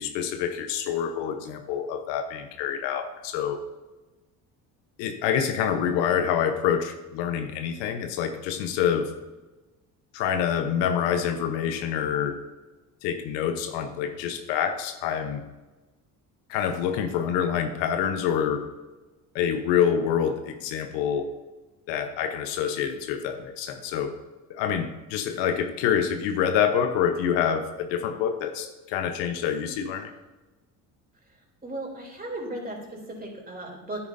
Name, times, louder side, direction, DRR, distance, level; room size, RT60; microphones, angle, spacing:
voice 1, 0.0-3.6 5.0-9.1 10.1-12.4 13.0-15.4 16.5-18.7 19.3-21.3 21.9-24.2 24.5-30.1, left 8 dB, 75° left, 7 dB, 1.0 m, -26 dB
voice 2, 31.6-34.1, right 1 dB, 20° right, -1 dB, 3.2 m, -36 dB
9.7 x 8.8 x 2.6 m, 1.1 s
hypercardioid pair, 65°, 44 cm